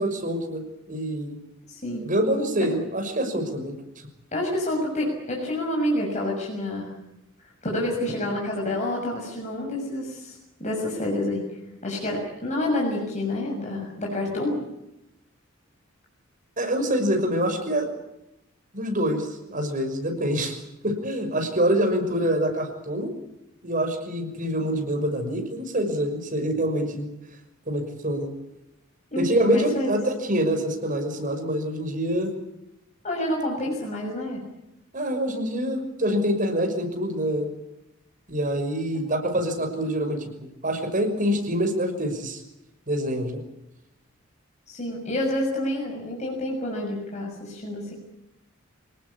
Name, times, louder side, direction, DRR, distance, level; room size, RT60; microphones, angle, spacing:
voice 1, 0.0-1.4 2.0-3.7 16.6-18.0 18.7-23.1 23.6-27.1 27.7-28.3 29.2-32.3 34.9-37.5 38.3-42.4 42.9-43.4, equal, 40° right, 5 dB, 6.0 m, -26 dB
voice 2, 1.7-2.1 2.6-2.8 4.3-7.0 7.4-11.5 11.8-14.6 29.1-29.9 33.0-34.4 38.9-39.0 44.7-47.9, left 1 dB, 35° left, -1 dB, 6.7 m, -28 dB
27.5 x 19.0 x 8.5 m, 0.88 s
head